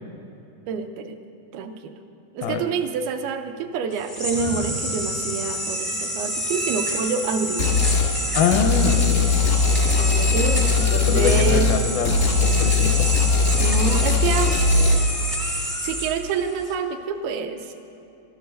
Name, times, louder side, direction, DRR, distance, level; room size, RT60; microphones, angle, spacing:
voice 1, 0.7-1.2 1.5-2.0 2.3-8.0 10.0-11.7 13.6-14.6 15.8-17.8, right 5 dB, 80° right, 6 dB, 2.5 m, -27 dB
sound 1, 3.9-16.7, equal, 25° right, 0.4 m, -28 dB
sound 2, 7.6-8.1 8.5-15.0, left 4 dB, 55° left, 0.8 m, -20 dB
voice 2, 8.3-9.4 11.0-13.1, left 6 dB, 80° left, 6 dB, 2.3 m, -24 dB
12.5 x 11.5 x 6.4 m, 2.9 s
omnidirectional pair, 4.6 m